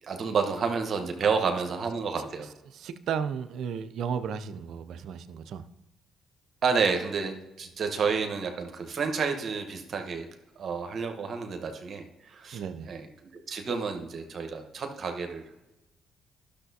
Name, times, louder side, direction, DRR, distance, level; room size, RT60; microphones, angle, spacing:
voice 1, 0.0-2.5 6.6-10.3 10.6-12.6 12.9-13.1 13.5-15.7, right 5 dB, 55° right, 5 dB, 1.0 m, -30 dB
voice 2, 2.7-5.7 12.5-12.9, right 7 dB, 70° right, 12 dB, 0.5 m, -34 dB
12.0 x 6.5 x 2.7 m, 0.98 s
hypercardioid pair, 55°, 0 cm